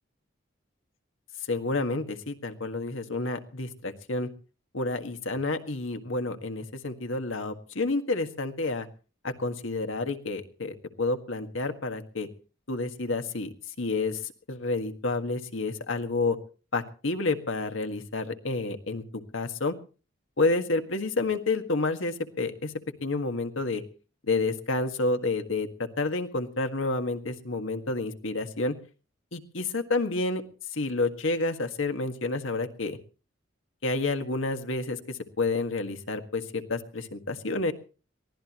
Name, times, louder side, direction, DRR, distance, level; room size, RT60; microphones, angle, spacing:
voice 1, 1.5-4.3 4.7-8.9 9.2-12.3 12.7-14.2 14.5-16.4 16.7-19.0 19.3-19.7 20.4-22.7 23.0-23.8 24.3-28.8 29.3-30.4 30.7-33.0 33.8-37.7, left 3 dB, 85° left, 7 dB, 1.7 m, -29 dB
23.0 x 17.0 x 3.1 m, 0.38 s
head